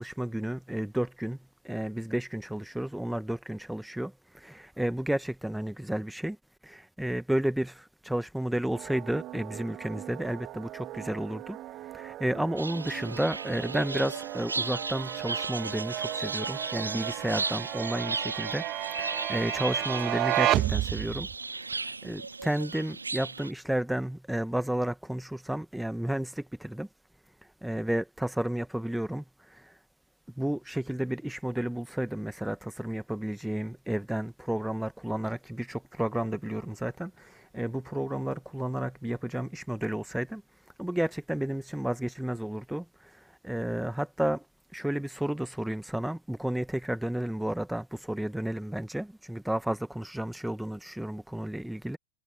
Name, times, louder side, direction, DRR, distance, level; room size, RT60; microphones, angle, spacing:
voice 1, 0.0-1.4 1.6-6.4 6.6-11.6 11.9-18.6 19.0-21.3 21.7-26.9 27.6-29.2 29.5-29.7 30.4-40.4 40.8-44.4 44.7-52.0, right 1 dB, ahead, 1.8 m, -32 dB
sound 1, 8.7-21.3, right 15 dB, 35° right, 2.9 m, -34 dB
sound 2, 12.6-23.5, right 4 dB, 80° right, 2.3 m, -35 dB
figure-of-eight pair, 90°, 0 cm